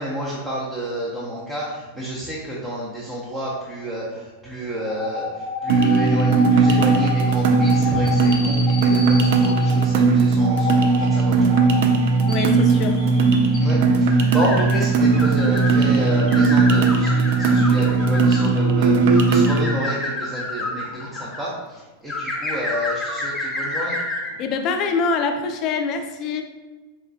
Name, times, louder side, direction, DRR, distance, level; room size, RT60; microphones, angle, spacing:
voice 1, 0.0-5.3 5.6-11.7 13.6-17.1 17.4-24.0, equal, 20° right, -6 dB, 0.7 m, -29 dB
sound 1, 4.8-9.7 10.4-11.0 11.5-11.8 12.2-15.8 16.2-18.6 19.1-21.4 22.1-24.3, left 3 dB, 15° left, 0.8 m, -29 dB
sound 2, 5.7-19.7, right 4 dB, 65° right, 0.3 m, -18 dB
voice 2, 12.3-13.0 24.4-26.4, left 4 dB, 45° left, 6 dB, 0.4 m, -24 dB
4.1 x 2.2 x 2.5 m, 1.3 s
hypercardioid pair, 100°, 0 cm